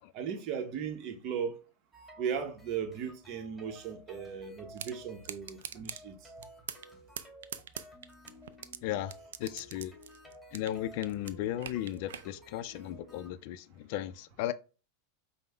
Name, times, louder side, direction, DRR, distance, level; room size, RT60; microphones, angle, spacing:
voice 1, 0.1-1.6 2.2-6.3, right 7 dB, 50° right, 0.8 m, -37 dB
sound 1, 1.9-13.3, equal, 5° left, 2.2 m, -54 dB
sound 2, 4.8-4.9 5.2-6.0 6.4-6.9 7.2-8.8 9.1-10.8 11.0-12.3, right 9 dB, 75° right, 0.3 m, -41 dB
voice 2, 8.8-9.9 10.5-14.5, left 12 dB, 60° left, 0.4 m, -36 dB
5.2 x 2.1 x 3.3 m
hypercardioid pair, 100°, 0 cm